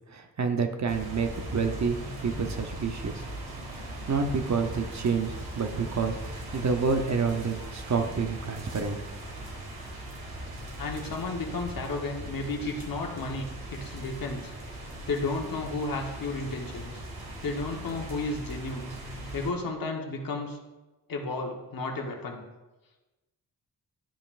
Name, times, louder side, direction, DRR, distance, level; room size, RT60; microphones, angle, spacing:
voice 1, 0.1-3.3 3.8-9.0, right 5 dB, 50° right, 6 dB, 0.7 m, -29 dB
sound 1, 0.9-19.5, right 1 dB, 75° right, 1.8 m, -39 dB
voice 2, 10.8-14.5 14.8-16.9 17.4-18.9 19.3-20.6 21.1-22.4, left 3 dB, 65° left, 1 dB, 1.1 m, -33 dB
11.5 x 5.3 x 2.5 m, 1.1 s
wide cardioid pair, 145°, 37 cm